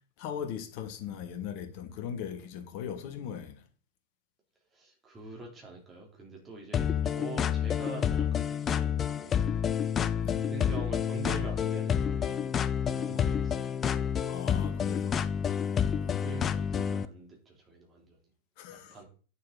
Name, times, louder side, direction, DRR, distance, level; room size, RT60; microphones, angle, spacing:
voice 1, 0.2-3.6 10.2-10.4 13.1-13.3 14.2-15.2 15.6-15.8 16.0-16.3 18.6-19.0, left 8 dB, 45° left, 1.4 m, -39 dB
voice 2, 4.7-9.4 10.4-12.4 12.8-14.2 15.8-18.2 18.7-19.1, right 3 dB, 20° right, 3.3 m, -45 dB
sound 1, 6.7-17.1, left 8 dB, 25° left, 0.5 m, -29 dB
8.9 x 6.5 x 3.9 m
figure-of-eight pair, 90°, 0 cm